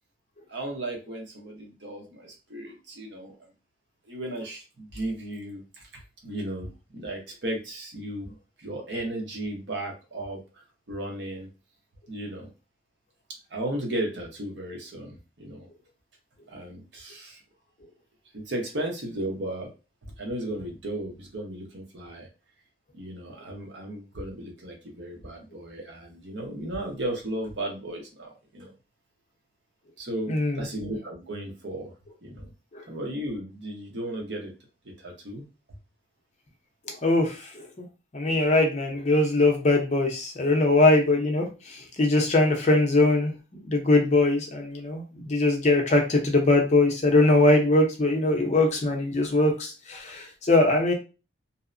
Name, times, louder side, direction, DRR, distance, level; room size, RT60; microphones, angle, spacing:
voice 1, 0.5-3.4 4.1-5.9 6.2-10.4 10.9-11.5 12.1-12.5 13.5-15.7 16.5-17.4 18.3-19.7 20.0-22.3 22.9-28.7 30.0-31.9 32.2-32.5 32.9-34.5 34.8-35.4, right 1 dB, 65° right, 1 dB, 0.8 m, -35 dB
voice 2, 30.3-30.6 32.7-32.8 36.9-37.7 38.1-50.9, left 2 dB, 35° left, 2 dB, 0.6 m, -22 dB
2.7 x 2.1 x 2.4 m, 0.30 s
head